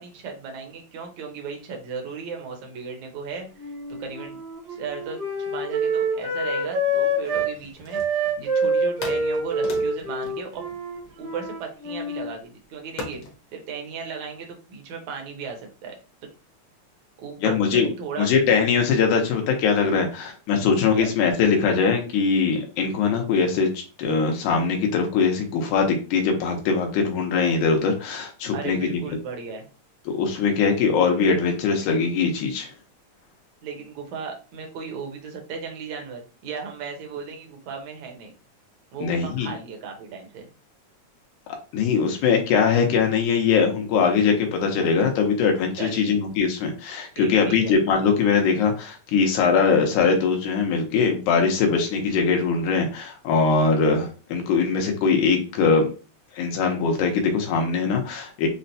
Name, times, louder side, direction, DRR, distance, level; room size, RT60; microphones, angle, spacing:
voice 1, 0.0-4.4 4.7-8.0 8.4-10.6 11.2-13.2 13.5-16.0 17.2-18.3 21.0-21.1 28.5-29.7 33.6-38.3 38.9-40.5 45.8-46.2 47.1-47.7, right 5 dB, 75° right, 2 dB, 2.1 m, -36 dB
Wind instrument woodwind instrument, 3.6-7.5 7.9-12.3, right 1 dB, 55° right, 1.1 m, -26 dB
sound 1, 7.3-8.5 9.0-11.5 13.0-13.4, left 3 dB, 65° left, 1.3 m, -38 dB
voice 2, 17.4-17.9 18.2-28.9 30.1-32.7 39.0-39.5 41.5-55.9 56.3-58.5, left 5 dB, 85° left, 2 dB, 2.2 m, -21 dB
6.0 x 2.1 x 2.6 m, 0.34 s
omnidirectional pair, 3.4 m